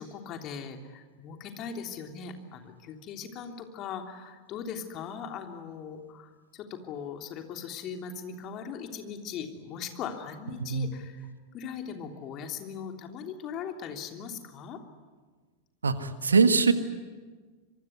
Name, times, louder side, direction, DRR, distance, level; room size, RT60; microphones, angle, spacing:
voice 1, 0.0-14.8 16.6-16.7, left 7 dB, 35° left, 4 dB, 3.2 m, -39 dB
voice 2, 15.8-16.7, right 5 dB, 75° right, 10 dB, 1.7 m, -22 dB
25.5 x 23.5 x 9.7 m, 1.4 s
figure-of-eight pair, 90°, 0 cm